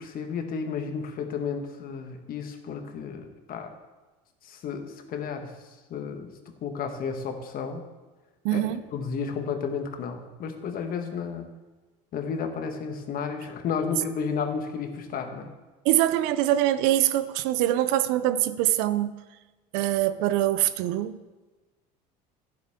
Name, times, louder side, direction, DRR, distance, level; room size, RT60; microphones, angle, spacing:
voice 1, 0.0-3.7 4.4-5.5 5.9-6.3 6.6-7.8 8.5-8.6 8.9-11.5 12.1-15.5, left 6 dB, 50° left, 6 dB, 1.5 m, -32 dB
voice 2, 8.4-8.8 15.8-19.2 19.7-21.2, right 13 dB, 75° right, 14 dB, 0.6 m, -24 dB
11.0 x 10.5 x 3.6 m, 1.2 s
supercardioid pair, 95°, 19 cm